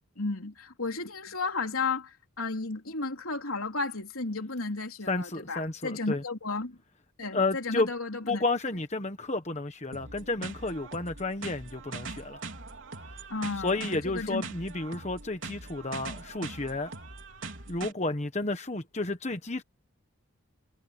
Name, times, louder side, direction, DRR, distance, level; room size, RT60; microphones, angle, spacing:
voice 1, 0.2-6.8 7.2-8.4 13.3-14.4, left 3 dB, 80° left, 3.5 m, -33 dB
voice 2, 5.1-6.2 7.3-7.9 8.3-12.4 13.6-16.9 17.7-19.6, left 2 dB, 30° left, 1.2 m, -31 dB
sound 1, 9.9-17.9, right 3 dB, 60° right, 4.2 m, -42 dB
head